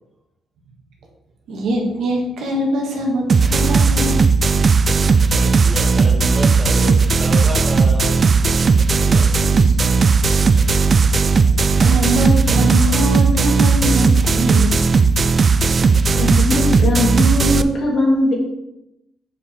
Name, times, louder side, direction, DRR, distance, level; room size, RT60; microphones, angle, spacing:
voice 1, 1.5-4.2 9.1-9.7 11.8-14.8, equal, 75° right, 0 dB, 1.7 m, -22 dB
sound 1, 3.3-17.6, right 4 dB, 40° right, 0.4 m, -15 dB
voice 2, 5.3-8.2 8.9-9.3, left 1 dB, 15° right, 1 dB, 1.6 m, -30 dB
voice 3, 16.1-18.3, left 1 dB, 60° left, -2 dB, 2.5 m, -19 dB
6.9 x 5.0 x 3.7 m, 0.87 s
cardioid pair, 90°, 0 cm